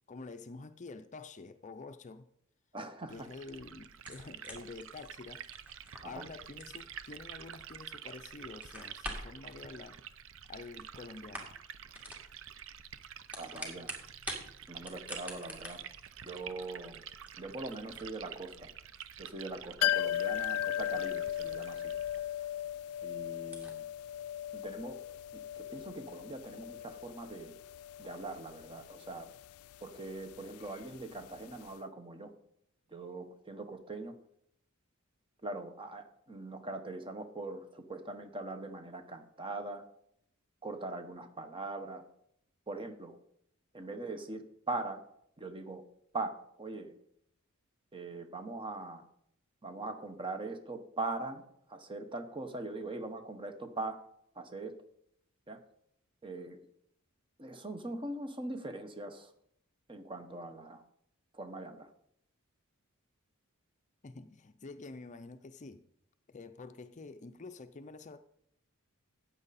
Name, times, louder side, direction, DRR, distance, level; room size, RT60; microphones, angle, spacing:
voice 1, 0.1-2.3 3.1-5.4 6.0-10.0 10.5-11.6 64.0-65.9 66.3-68.2, left 3 dB, 35° left, 0.5 m, -48 dB
voice 2, 2.7-3.3 6.0-6.3 13.4-13.9 14.7-15.8 16.2-17.0 17.4-18.7 19.2-21.8 22.2-22.5 23.0-23.9 24.5-25.0 25.3-27.5 28.0-29.3 29.8-32.3 32.9-34.1 35.4-39.8 40.6-42.1 42.7-43.2 43.7-45.0 45.4-45.8 46.1-46.9 47.9-49.0 49.6-51.4 51.7-54.0 54.3-54.8 55.5-55.6 56.2-56.6 57.4-59.3 59.9-60.8 61.3-61.9, right 2 dB, 25° right, 1.1 m, -41 dB
Liquid, 3.1-22.2, right 9 dB, 60° right, 0.6 m, -49 dB
sound 1, 3.9-8.0 8.3-9.4 10.4-10.9 11.2-11.7 11.9-12.3 13.1-14.4 14.8-21.8 22.1-22.2 22.7-22.8 23.0-23.1 23.4-23.7, equal, 5° right, 2.1 m, -47 dB
sound 2, 19.8-31.4 31.7-31.8, left 12 dB, 85° left, 0.3 m, -37 dB
14.0 x 8.8 x 4.2 m
head